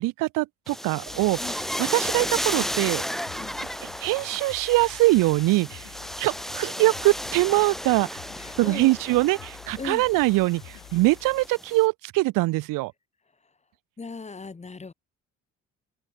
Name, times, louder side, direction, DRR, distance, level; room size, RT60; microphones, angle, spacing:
voice 1, 0.0-1.4 1.8-3.0 3.8-5.9 6.2-8.2 8.6-12.9, right 21 dB, 80° right, 0.8 m, -23 dB
sound 1, 0.7-11.8, equal, ahead, 0.7 m, -34 dB
sound 2, 1.1-11.5, left 16 dB, 80° left, 3.0 m, -48 dB
voice 2, 8.4-8.9 9.8-10.0 14.0-14.9, left 4 dB, 20° left, 1.1 m, -37 dB
open air
supercardioid pair, 70°, 32 cm